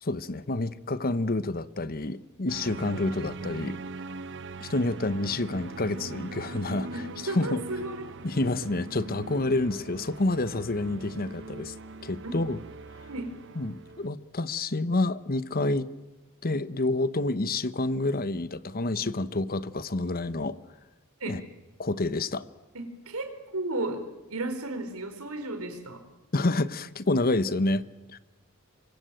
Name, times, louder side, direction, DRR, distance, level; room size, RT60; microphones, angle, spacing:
voice 1, 0.0-3.8 4.6-7.6 8.2-11.7 12.0-12.6 13.0-13.1 13.5-15.9 16.4-20.6 21.3-21.4 21.8-22.4 26.3-27.8 28.1-28.2, left 2 dB, 45° left, 1.1 m, -28 dB
sound 1, 2.5-14.1, right 3 dB, 60° right, 1.1 m, -41 dB
voice 2, 7.3-8.0 12.2-12.3 13.1-13.3 21.2-21.4 22.7-24.0 24.3-26.0, right 2 dB, 80° right, 4.5 m, -33 dB
27.0 x 23.5 x 9.2 m
head